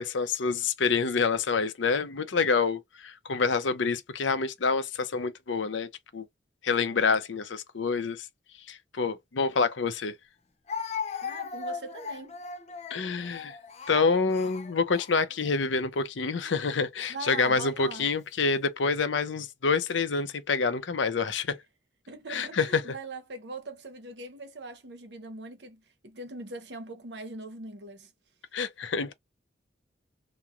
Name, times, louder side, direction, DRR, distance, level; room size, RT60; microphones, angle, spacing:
voice 1, 0.0-6.3 6.6-8.3 8.7-10.1 12.9-13.6 13.9-21.6 22.3-22.8 28.5-29.1, left 4 dB, 85° left, 0.6 m, -27 dB
Speech, 9.5-9.6 10.7-15.6 16.3-16.6 17.5-18.1, left 5 dB, 35° left, 0.4 m, -38 dB
voice 2, 11.2-12.4 17.1-18.1 22.1-28.1, right 2 dB, 70° right, 0.9 m, -41 dB
3.0 x 2.2 x 2.4 m
head